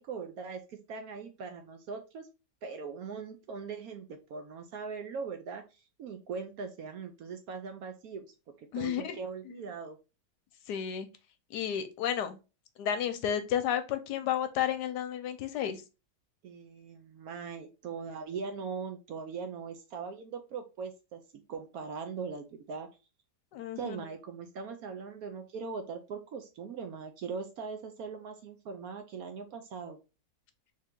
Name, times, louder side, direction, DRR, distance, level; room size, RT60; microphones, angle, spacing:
voice 1, 0.0-2.3 2.6-10.0 16.4-21.2 21.5-22.9 23.8-30.0, right 5 dB, 70° right, 6 dB, 0.9 m, -40 dB
voice 2, 8.7-9.2 9.5-9.6 10.7-11.1 11.5-12.4 12.8-15.8 23.5-24.0, left 9 dB, 75° left, 9 dB, 1.1 m, -32 dB
3.6 x 2.8 x 3.5 m, 0.30 s
omnidirectional pair, 1.9 m